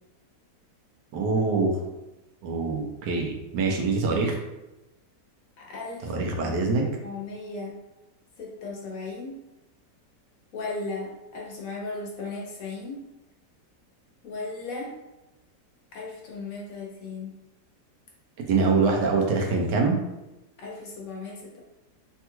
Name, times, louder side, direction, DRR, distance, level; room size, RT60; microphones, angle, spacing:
voice 1, 1.1-1.7 2.4-4.4 6.0-6.8 18.5-20.0, right 4 dB, 80° right, 0 dB, 1.2 m, -24 dB
voice 2, 5.6-6.1 6.4-6.5 7.0-7.8 8.4-9.4 10.5-13.0 14.2-14.9 15.9-17.3 20.6-21.6, left 3 dB, 65° left, -3 dB, 0.9 m, -36 dB
3.3 x 2.3 x 2.9 m, 0.99 s
omnidirectional pair, 1.8 m